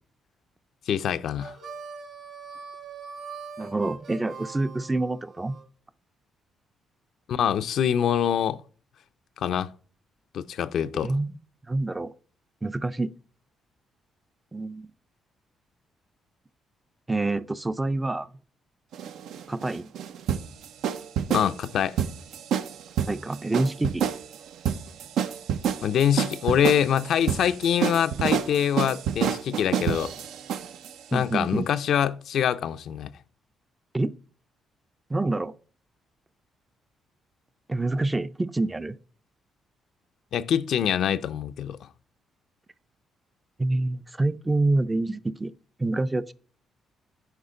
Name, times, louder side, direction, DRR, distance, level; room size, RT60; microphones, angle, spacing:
voice 1, 0.9-1.5 7.3-8.6 9.4-9.7 10.3-11.1 21.3-22.0 25.8-30.1 31.1-33.1 40.3-41.8, left 9 dB, 70° left, 0.4 m, -25 dB
Harmonica, 1.4-5.6, right 5 dB, 60° right, 3.3 m, -42 dB
voice 2, 3.6-5.6 10.9-11.3 11.7-12.1 12.6-13.1 14.5-14.9 17.1-18.3 19.5-19.9 23.1-24.1 31.1-31.7 33.9-34.1 35.1-35.5 37.7-39.0 43.6-45.5 45.8-46.3, right 2 dB, 15° right, 0.4 m, -27 dB
sound 1, 18.9-30.9, right 8 dB, 80° right, 0.5 m, -28 dB
8.1 x 5.1 x 3.7 m
cardioid pair, 90°, 0 cm